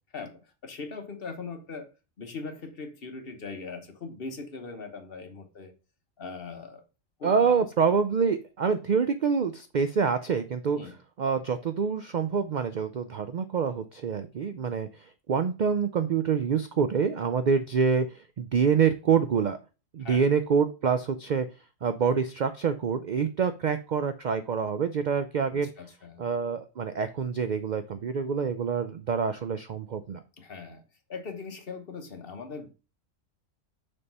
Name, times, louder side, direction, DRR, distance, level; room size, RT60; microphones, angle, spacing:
voice 1, 0.1-1.9 2.2-5.7 6.2-6.8 7.2-7.6 10.7-11.0 20.0-20.2 25.5-26.3 30.4-30.8 31.1-32.7, left 4 dB, 50° left, 5 dB, 1.2 m, -40 dB
voice 2, 7.2-10.8 11.2-14.9 15.3-18.1 18.4-19.6 19.9-21.5 21.8-25.7 26.2-30.2, right 6 dB, 65° right, 10 dB, 0.4 m, -26 dB
6.9 x 3.6 x 5.3 m, 0.31 s
omnidirectional pair, 1.4 m